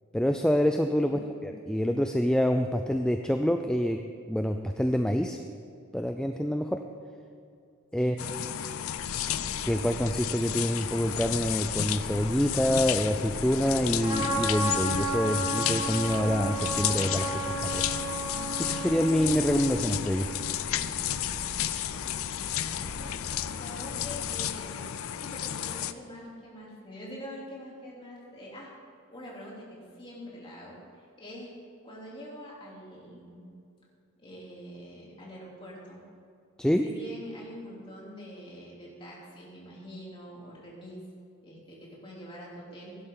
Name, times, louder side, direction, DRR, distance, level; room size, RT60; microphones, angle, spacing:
voice 1, 0.1-4.0 4.3-5.4 5.9-6.8 7.9-8.2 9.7-17.8 18.6-20.3 36.6-36.9, equal, 5° left, 5 dB, 0.4 m, -26 dB
voice 2, 8.0-8.5 23.0-28.8 29.1-31.5 31.8-33.5 34.2-36.0 36.8-41.0 41.4-43.0, equal, 25° left, -5 dB, 3.2 m, -45 dB
sound 1, 8.2-25.9, left 10 dB, 75° left, 0.5 m, -32 dB
Purr, 8.9-24.3, equal, 55° right, 3.5 m, -44 dB
Trumpet, 14.0-20.2, right 2 dB, 25° right, 2.4 m, -33 dB
16.0 x 11.0 x 3.8 m, 2.5 s
head